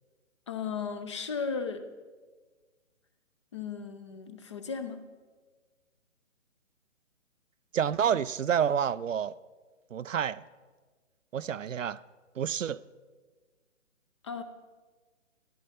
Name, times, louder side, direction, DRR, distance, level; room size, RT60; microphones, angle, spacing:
voice 1, 0.5-1.8 3.5-5.0 14.2-14.4, left 5 dB, 25° left, 0.6 m, -35 dB
voice 2, 7.7-9.4 9.9-10.4 11.3-12.0 12.4-12.8, right 8 dB, 80° right, 0.5 m, -28 dB
14.0 x 12.5 x 4.3 m
figure-of-eight pair, 140°, 38 cm